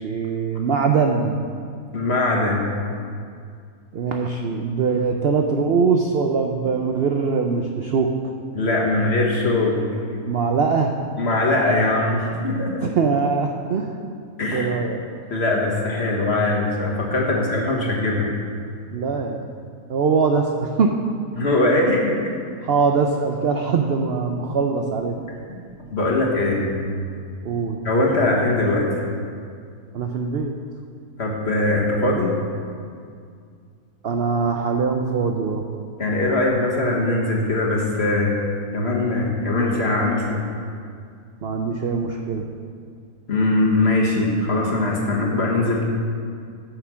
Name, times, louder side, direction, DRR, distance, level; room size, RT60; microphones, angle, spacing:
voice 1, 0.0-1.4 3.9-8.1 10.3-11.0 12.8-14.0 14.5-15.0 18.9-19.5 19.9-21.0 22.6-25.2 27.4-27.8 29.9-30.5 34.0-35.6 41.4-42.5, right 5 dB, 65° right, 3 dB, 0.6 m, -22 dB
voice 2, 1.9-2.8 8.5-9.8 11.2-12.8 14.4-14.7 15.3-18.3 21.4-22.3 25.9-26.8 27.8-28.9 31.2-32.3 36.0-38.3 38.7-40.4 43.3-45.8, left 2 dB, 45° left, -2 dB, 1.6 m, -21 dB
9.4 x 6.6 x 6.2 m, 2.2 s
omnidirectional pair, 1.7 m